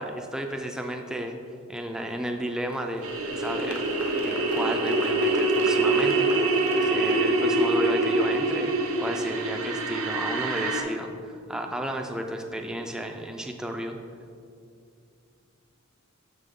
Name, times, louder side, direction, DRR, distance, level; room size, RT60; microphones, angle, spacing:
voice 1, 0.0-1.3 1.7-3.8 4.2-8.7 9.0-14.0, right 1 dB, 5° right, 3 dB, 0.3 m, -33 dB
Applause, 2.7-8.0, left 2 dB, 90° left, 0.8 m, -41 dB
sound 1, 3.0-10.8, right 2 dB, 75° right, 0.7 m, -25 dB
6.4 x 5.3 x 3.6 m, 2.4 s
head